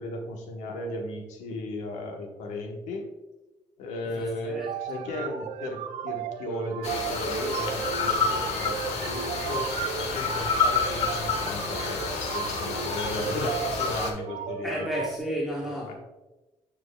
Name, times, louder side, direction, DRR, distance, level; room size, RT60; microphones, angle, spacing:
voice 1, 0.0-3.1 3.8-14.9 15.6-15.9, left 1 dB, 85° left, 2 dB, 1.1 m, -35 dB
voice 2, 4.1-4.7 4.9-5.1 14.6-15.9, equal, ahead, -4 dB, 1.1 m, -32 dB
sound 1, 4.6-15.2, right 9 dB, 75° right, 0.4 m, -35 dB
sound 2, 6.8-14.1, left 4 dB, 65° left, 1.2 m, -29 dB
9.4 x 4.5 x 2.2 m, 1.1 s
cardioid pair, 100°, 12 cm